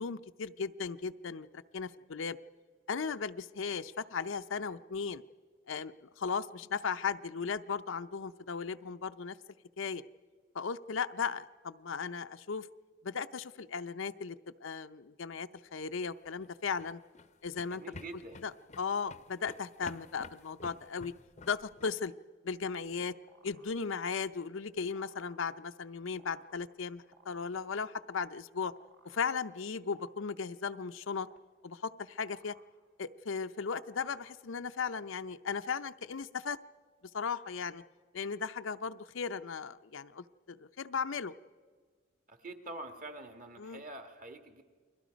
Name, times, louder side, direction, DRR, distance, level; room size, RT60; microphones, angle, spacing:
voice 1, 0.0-2.4 2.9-5.2 5.7-9.4 9.8-10.0 10.5-12.7 13.0-14.4 14.6-17.0 17.4-17.8 18.4-18.5 18.8-21.1 21.5-22.1 22.4-23.1 23.4-28.7 29.0-31.3 31.6-32.5 33.0-36.6 37.1-37.8 38.1-41.3 43.6-43.8, left 5 dB, 80° left, 10 dB, 0.6 m, -36 dB
sound 1, 16.3-21.9, left 3 dB, 35° left, 0.6 m, -51 dB
voice 2, 17.7-18.4 42.3-44.6, right 2 dB, 40° right, 6 dB, 1.7 m, -46 dB
sound 2, 22.6-35.0, right 2 dB, 65° right, 2.6 m, -66 dB
29.5 x 22.0 x 5.2 m, 1.5 s
head